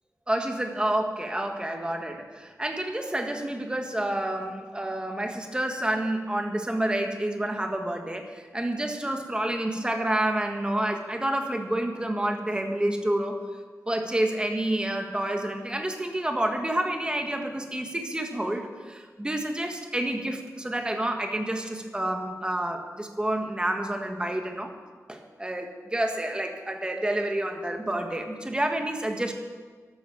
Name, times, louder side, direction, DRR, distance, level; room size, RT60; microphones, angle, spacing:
voice 1, 0.3-13.4 13.9-24.7 25.1-29.3, right 1 dB, 15° right, 4 dB, 1.8 m, -29 dB
13.0 x 12.0 x 7.2 m, 1.5 s
wide cardioid pair, 110°, 6 cm